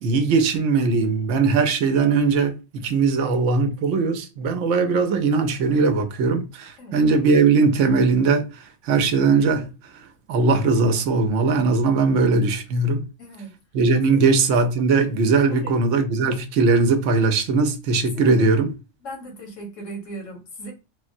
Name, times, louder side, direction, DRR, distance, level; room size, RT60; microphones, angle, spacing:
voice 1, 0.0-8.5 8.8-9.7 10.3-13.0 13.7-18.7, right 4 dB, 80° right, 0.9 m, -20 dB
voice 2, 13.2-13.5 14.1-14.3 15.5-15.8 18.1-18.5 19.0-20.7, right 1 dB, 85° left, 1.3 m, -37 dB
3.5 x 2.1 x 2.5 m
omnidirectional pair, 1.3 m